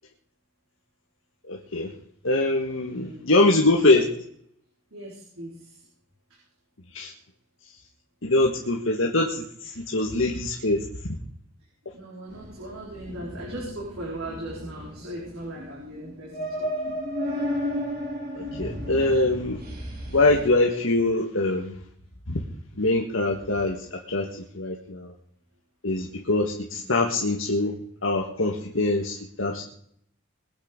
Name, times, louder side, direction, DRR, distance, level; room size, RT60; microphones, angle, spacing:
voice 1, 1.5-1.9 2.2-4.0 6.9-7.1 8.2-10.8 18.4-19.6 20.1-21.8 22.3-22.4 22.8-24.3 24.5-25.1 25.8-27.7 28.0-29.6, left 2 dB, 70° left, 0 dB, 1.7 m, -23 dB
voice 2, 2.9-3.2 4.9-5.9 6.3-6.4 10.6-10.7 11.9-17.0 26.7-26.9, right 1 dB, 80° right, -4 dB, 4.5 m, -39 dB
sound 1, 12.3-20.5, equal, 45° right, 3.9 m, -34 dB
22.0 x 8.9 x 5.3 m, 0.66 s
head